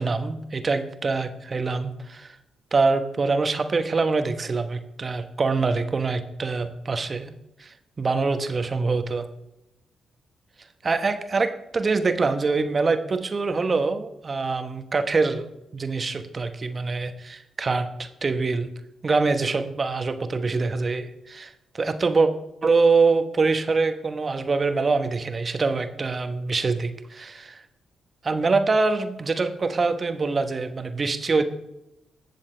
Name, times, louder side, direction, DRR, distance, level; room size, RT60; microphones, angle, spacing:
voice 1, 0.0-2.4 2.7-7.3 7.6-9.3 10.8-18.7 19.0-22.3 22.6-27.6 28.2-31.4, right 4 dB, 40° right, 8 dB, 1.1 m, -24 dB
21.0 x 7.1 x 3.4 m, 0.90 s
hypercardioid pair, 40°, 0 cm